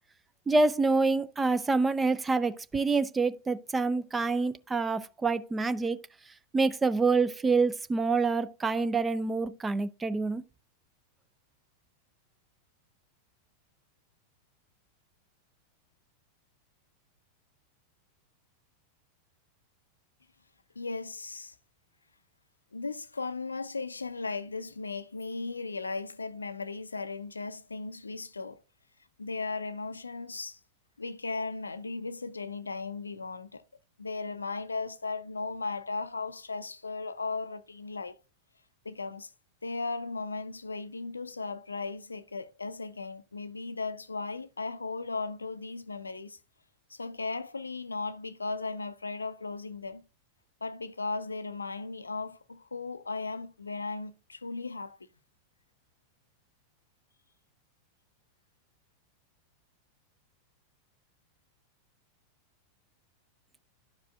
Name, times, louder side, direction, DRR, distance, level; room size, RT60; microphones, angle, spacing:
voice 1, 0.5-6.0 6.5-10.4, right 3 dB, 15° right, 0.4 m, -27 dB
voice 2, 20.8-21.6 22.7-28.6 29.2-30.6 31.0-33.6 34.0-38.2 38.8-39.3 39.6-46.4 46.9-50.0 50.6-55.0, left 3 dB, 80° left, 0.4 m, -36 dB
11.5 x 4.8 x 2.3 m
figure-of-eight pair, 90°, 0 cm